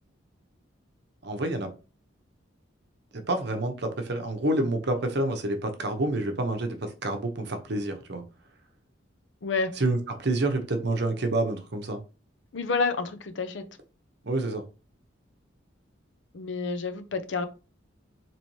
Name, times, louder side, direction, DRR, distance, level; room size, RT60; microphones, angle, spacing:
voice 1, 1.2-1.7 3.1-8.2 9.8-12.0 14.2-14.6, right 2 dB, 55° right, 0.8 m, -28 dB
voice 2, 9.4-9.7 12.5-13.7 16.3-17.5, left 4 dB, 65° left, 0.6 m, -29 dB
4.2 x 3.0 x 3.1 m
head